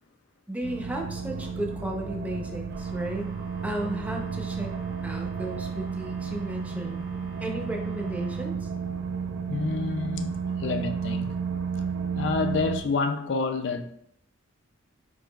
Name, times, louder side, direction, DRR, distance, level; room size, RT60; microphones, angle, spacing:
voice 1, 0.5-3.4 3.6-4.8 5.0-7.0 7.4-8.7, right 1 dB, 10° right, 0.6 m, -34 dB
sound 1, 0.6-12.8, right 6 dB, 80° right, 0.4 m, -32 dB
sound 2, 2.7-8.4, right 1 dB, 55° right, 0.8 m, -50 dB
voice 2, 9.5-10.3 10.6-11.4 12.1-13.8, left 4 dB, 60° left, 0.4 m, -28 dB
4.8 x 4.6 x 2.2 m
head